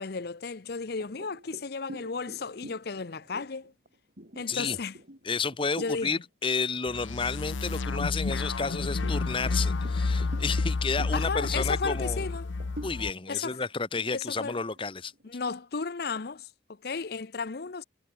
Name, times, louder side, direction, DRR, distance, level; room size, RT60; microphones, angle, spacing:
voice 1, 0.0-3.7 4.4-5.0 5.8-6.1 11.1-12.5 13.3-13.6 14.1-14.6 15.2-17.8, left 5 dB, 55° left, 0.7 m, -34 dB
sound 1, 1.0-6.1 6.6-6.8 7.3-8.1 8.6-15.3, equal, 50° right, 6.2 m, -47 dB
voice 2, 5.2-12.2 12.8-15.1, left 4 dB, 30° left, 0.9 m, -31 dB
sound 2, 6.9-13.1, left 3 dB, 90° left, 0.7 m, -30 dB
head